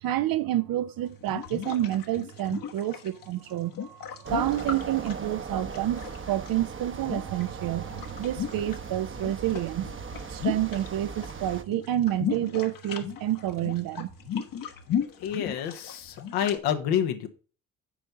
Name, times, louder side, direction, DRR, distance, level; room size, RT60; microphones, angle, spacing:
voice 1, 0.0-9.9 10.3-14.1, right 13 dB, 65° right, 0.8 m, -29 dB
sound 1, 1.1-6.5 7.0-8.8 9.1-11.3 11.6-16.6, left 8 dB, 60° left, 1.3 m, -36 dB
sound 2, 4.2-11.6, right 5 dB, 30° right, 1.0 m, -39 dB
voice 2, 15.2-17.3, left 9 dB, 75° left, 1.2 m, -28 dB
8.8 x 4.5 x 5.4 m
hypercardioid pair, 50°, 38 cm